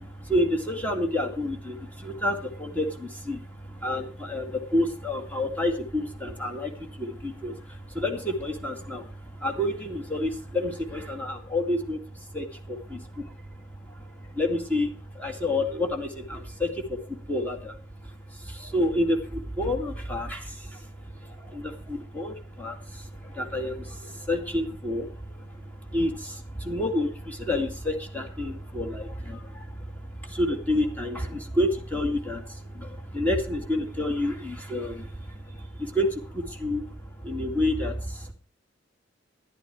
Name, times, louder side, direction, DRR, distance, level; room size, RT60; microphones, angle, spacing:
voice 1, 0.0-17.8 18.0-38.3, left 1 dB, 10° left, 3 dB, 2.1 m, -30 dB
13.0 x 10.5 x 4.8 m, 0.34 s
head